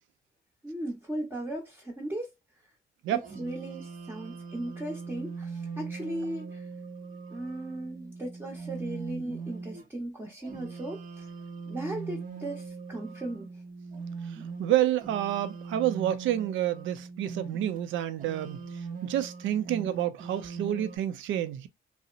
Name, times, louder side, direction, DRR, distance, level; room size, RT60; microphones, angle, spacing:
voice 1, 0.6-2.3 3.1-6.6 7.3-11.2 11.7-13.5, right 1 dB, 15° right, 0.8 m, -37 dB
sound 1, 3.2-9.8 10.4-17.8 18.2-21.0, right 5 dB, 40° right, 0.8 m, -41 dB
voice 2, 14.6-18.6 19.0-21.7, right 12 dB, 75° right, 0.5 m, -28 dB
2.7 x 2.0 x 2.4 m
cardioid pair, 90°, 20 cm